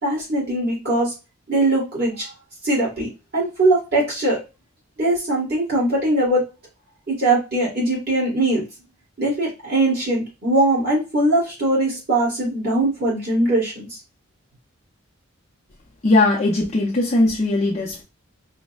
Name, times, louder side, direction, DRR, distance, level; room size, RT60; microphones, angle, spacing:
voice 1, 0.0-1.1 1.5-2.3 2.6-4.4 5.0-6.4 7.1-8.6 9.2-14.0, right 2 dB, 50° right, 1.5 m, -21 dB
voice 2, 16.0-18.0, left 2 dB, 35° left, 0.6 m, -19 dB
5.0 x 2.1 x 2.3 m
head